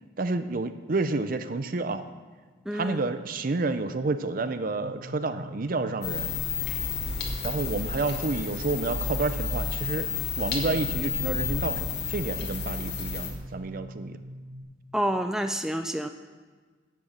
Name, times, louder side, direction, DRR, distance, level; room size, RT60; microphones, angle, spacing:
voice 1, 0.2-2.0 2.7-6.3 7.4-10.1 10.4-14.2, right 3 dB, 50° right, 11 dB, 0.6 m, -29 dB
voice 2, 2.7-3.0 14.9-16.1, equal, 5° right, 7 dB, 0.4 m, -28 dB
sound 1, 4.8-14.6, equal, 40° left, 2.6 m, -43 dB
sound 2, 6.0-13.3, left 5 dB, 60° left, 1.8 m, -31 dB
10.5 x 8.1 x 7.2 m, 1.4 s
head